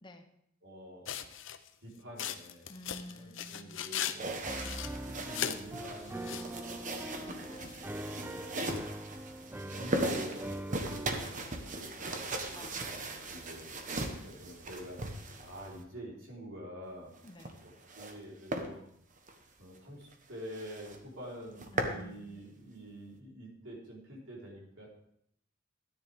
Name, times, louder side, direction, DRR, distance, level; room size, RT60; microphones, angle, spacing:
voice 1, 0.6-1.3 1.8-2.7 3.1-4.3 5.0-7.7 8.2-8.8 9.6-11.3 11.6-12.9 13.3-13.8 14.2-17.1 17.6-18.8 19.6-24.9, equal, 80° right, -4 dB, 4.2 m, -47 dB
sound 1, 1.1-1.7 2.2-4.2 4.5-5.6 6.0-6.5 7.6-7.8, left 9 dB, 75° left, 0.7 m, -37 dB
voice 2, 2.7-3.9 4.6-4.9 7.1-8.2 11.4-11.8 12.5-13.2 17.2-17.6 21.7-22.4, left 1 dB, 25° left, 6 dB, 0.9 m, -51 dB
sound 2, 4.2-15.8 17.1-18.2 18.5-18.7 19.2-19.3 19.7-19.8 20.1-20.2 20.5-21.0 21.3-22.0, right 2 dB, 40° right, 1.2 m, -38 dB
Piano, 4.4-11.3, right 1 dB, 10° right, 0.4 m, -43 dB
13.5 x 10.0 x 3.6 m, 0.71 s
head